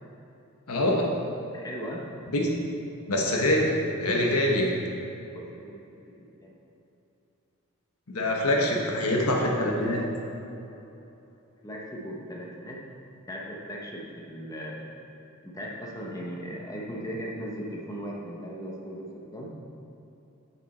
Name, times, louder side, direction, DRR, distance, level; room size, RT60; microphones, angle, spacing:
voice 1, 0.7-1.1 2.3-2.5 3.1-3.7 4.0-4.8 8.1-10.1, left 1 dB, 85° left, -1 dB, 1.2 m, -24 dB
voice 2, 1.5-2.1 5.3-5.7 6.4-6.5 11.6-12.8 13.1-14.8 15.4-19.5, equal, 15° left, -3 dB, 0.8 m, -37 dB
7.7 x 6.6 x 4.3 m, 3.0 s
head